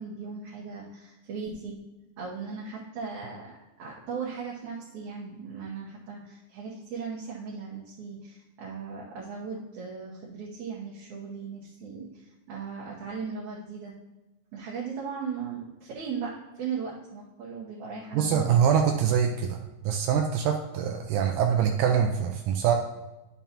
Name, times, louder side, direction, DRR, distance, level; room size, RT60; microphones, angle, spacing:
voice 1, 0.0-1.8 2.2-13.9 14.5-18.6, right 5 dB, 65° right, -5 dB, 2.2 m, -37 dB
voice 2, 18.1-19.6 19.8-22.7, right 8 dB, 90° right, 3 dB, 1.7 m, -24 dB
10.5 x 6.9 x 2.9 m, 1.0 s
omnidirectional pair, 4.1 m